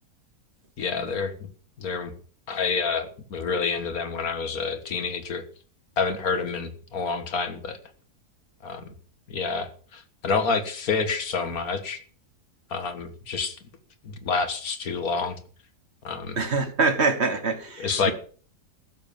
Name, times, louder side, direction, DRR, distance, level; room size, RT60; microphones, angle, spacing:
voice 1, 0.8-1.5 1.8-2.1 2.5-5.4 6.0-7.8 8.6-8.9 9.3-12.0 12.7-13.6 14.0-15.4 16.0-16.4 17.8-18.1, left 5 dB, 65° left, 9 dB, 2.1 m, -28 dB
voice 2, 16.4-18.1, right 4 dB, 45° right, 8 dB, 1.7 m, -24 dB
15.0 x 7.4 x 7.1 m, 0.43 s
omnidirectional pair, 1.7 m